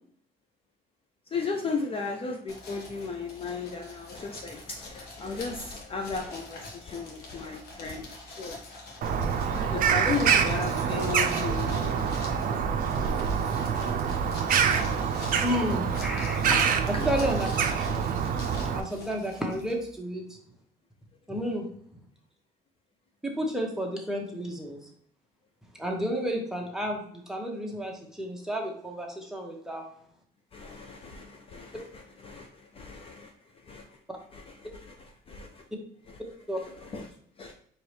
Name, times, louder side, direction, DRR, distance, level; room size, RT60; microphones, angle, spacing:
voice 1, 1.3-8.6 8.9-9.3 9.5-13.1 16.9-17.1 30.5-34.0 34.3-35.6 36.1-36.2 36.6-37.5, left 4 dB, 35° left, 3 dB, 0.5 m, -36 dB
sound 1, 2.5-20.0, left 2 dB, 70° left, 1.3 m, -45 dB
Bird vocalization bird call bird song, 9.0-18.8, right 7 dB, 55° right, 0.5 m, -26 dB
voice 2, 15.4-16.6 16.9-17.5 18.0-18.1 18.7-20.2 21.3-21.7 23.2-24.9 25.8-29.8 34.1-34.2 36.5-36.6, equal, 5° right, 0 dB, 1.0 m, -31 dB
4.5 x 3.1 x 3.2 m, 0.64 s
cardioid pair, 110°, 17 cm